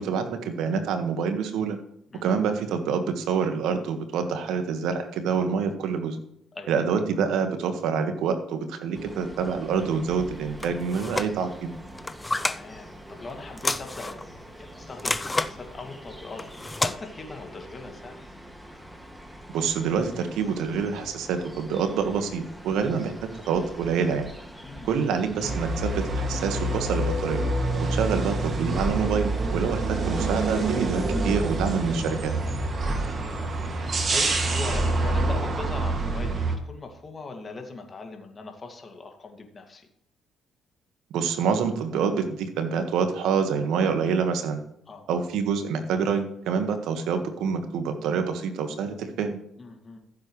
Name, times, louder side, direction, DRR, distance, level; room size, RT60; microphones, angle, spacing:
voice 1, 0.0-1.8 2.2-6.2 6.7-11.7 19.5-23.1 23.5-24.3 24.8-27.4 27.9-32.3 41.1-44.6 45.1-49.4, right 6 dB, 80° right, 7 dB, 1.6 m, -26 dB
sound 1, 8.9-25.6, equal, 5° right, 2.1 m, -44 dB
sound 2, 10.6-11.3 11.9-12.6 13.6-14.3 15.0-15.5 16.4-17.0, left 2 dB, 15° left, 0.5 m, -29 dB
voice 2, 12.4-18.2 24.6-24.9 30.9-31.2 33.0-39.9 44.9-45.1 49.6-50.0, left 3 dB, 35° left, 3 dB, 2.3 m, -40 dB
sound 3, 25.4-36.6, right 2 dB, 45° right, 2.2 m, -26 dB
14.5 x 7.6 x 3.2 m, 0.75 s
supercardioid pair, 70°, 0 cm